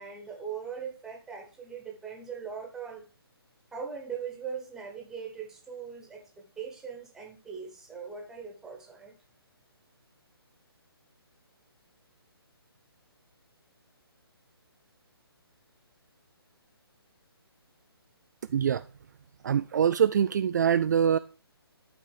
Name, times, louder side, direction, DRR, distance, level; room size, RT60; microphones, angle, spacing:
voice 1, 0.0-3.0 3.7-9.2, right 6 dB, 5° right, 1.3 m, -40 dB
voice 2, 18.5-18.9 19.4-21.2, right 8 dB, 45° right, 0.4 m, -24 dB
12.0 x 4.1 x 4.8 m
hypercardioid pair, 160°, 13 cm